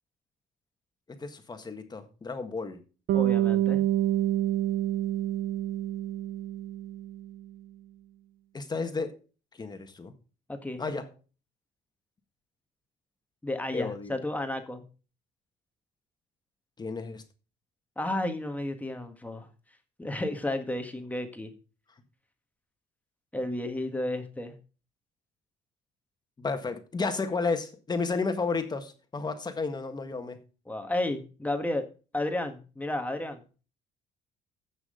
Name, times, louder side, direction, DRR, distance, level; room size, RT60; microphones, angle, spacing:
voice 1, 1.2-2.8 8.5-9.2 9.6-10.1 10.8-11.1 13.7-14.2 16.8-17.2 26.4-30.4, left 4 dB, 25° left, 1.7 m, -32 dB
voice 2, 3.1-3.8 10.5-10.8 13.4-14.8 18.0-19.5 20.0-21.5 23.3-24.5 30.7-31.8 32.1-33.4, left 1 dB, 10° left, 1.6 m, -32 dB
Bass guitar, 3.1-7.4, right 13 dB, 65° right, 0.7 m, -27 dB
15.5 x 6.2 x 3.8 m
cardioid pair, 110°, 17 cm